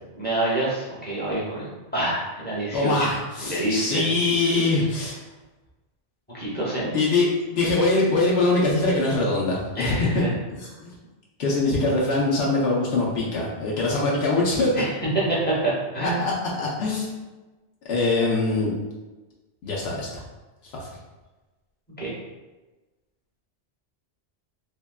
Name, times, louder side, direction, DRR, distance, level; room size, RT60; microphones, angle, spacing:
voice 1, 0.1-3.1 3.4-4.0 6.3-6.9 9.7-10.3 14.7-14.9 15.3-16.2 22.0-22.1, right 2 dB, 10° left, -7 dB, 0.7 m, -27 dB
voice 2, 2.7-5.2 6.9-10.2 10.5-10.9 11.4-14.7 16.0-17.2 17.9-18.7 19.6-20.2 20.7-20.9, left 2 dB, 70° left, -4 dB, 0.8 m, -23 dB
3.5 x 2.1 x 2.2 m, 1.2 s
omnidirectional pair, 1.2 m